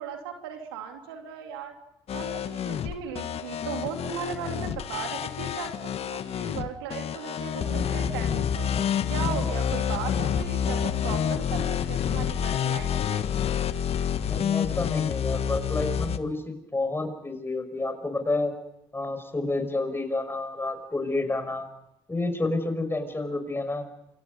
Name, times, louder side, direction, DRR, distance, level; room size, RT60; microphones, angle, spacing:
voice 1, 0.0-1.7 2.1-8.7 9.1-13.2, right 8 dB, 90° right, 4 dB, 3.1 m, -37 dB
sound 1, 2.1-16.2, left 8 dB, 55° left, 1.6 m, -28 dB
voice 2, 14.2-18.5 18.9-21.7 22.1-23.9, left 2 dB, 20° left, 8 dB, 6.1 m, -29 dB
28.5 x 25.5 x 5.4 m, 0.82 s
hypercardioid pair, 60°, 12 cm